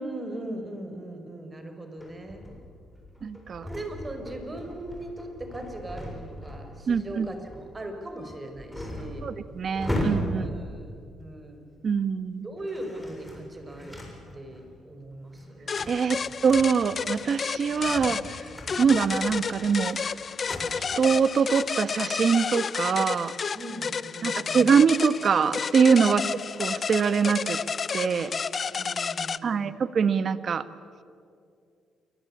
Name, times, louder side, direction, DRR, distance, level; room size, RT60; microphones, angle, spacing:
voice 1, 0.0-2.4 3.6-9.3 10.3-11.7 12.4-14.0 14.3-15.7 16.2-16.3 18.8-18.9 23.5-24.7 26.1-26.2 28.7-29.8, right 1 dB, 25° right, 6 dB, 4.9 m, -39 dB
sound 1, 2.0-11.8 12.5-14.7 15.1-20.8, left 1 dB, 10° left, 7.5 m, -38 dB
voice 2, 3.2-3.7 6.9-7.3 9.2-10.5 11.8-12.5 15.9-18.4 18.8-20.1 20.8-23.3 24.2-26.2 26.6-27.6 27.9-28.3 29.4-30.7, right 6 dB, 50° right, 13 dB, 1.3 m, -24 dB
sound 2, 15.7-29.4, left 6 dB, 45° left, 0.7 m, -31 dB
27.5 x 24.0 x 8.6 m, 2.3 s
cardioid pair, 90°, 0 cm